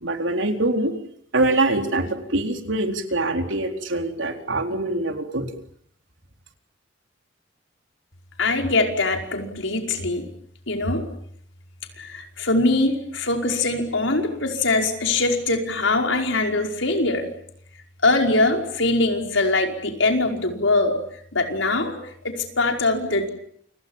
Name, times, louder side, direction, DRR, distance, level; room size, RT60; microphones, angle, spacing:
voice 1, 0.0-0.9 1.3-5.5, right 2 dB, 80° right, 5 dB, 4.1 m, -24 dB
voice 2, 8.4-10.3 10.7-11.0 12.0-17.3 18.0-21.0 21.3-21.9 22.2-23.3, left 2 dB, 85° left, 3 dB, 5.2 m, -22 dB
29.5 x 26.0 x 7.4 m, 0.68 s
head